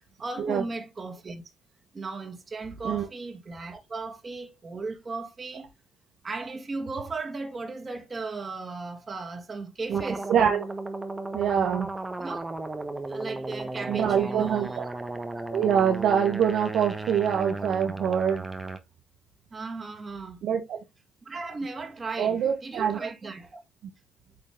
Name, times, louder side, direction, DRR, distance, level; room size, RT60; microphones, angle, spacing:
voice 1, 0.2-1.4 1.9-5.7 6.2-10.3 12.2-12.4 13.1-14.9 19.5-20.4 21.2-23.6, right 3 dB, 40° right, 2.0 m, -36 dB
sound 1, 9.9-18.8, right 2 dB, 20° right, 1.2 m, -35 dB
voice 2, 10.3-10.6 11.3-11.9 13.9-14.7 15.5-18.4 20.4-20.8 22.2-23.0, right 8 dB, 65° right, 1.0 m, -24 dB
8.7 x 3.5 x 3.4 m
hypercardioid pair, 45°, 0 cm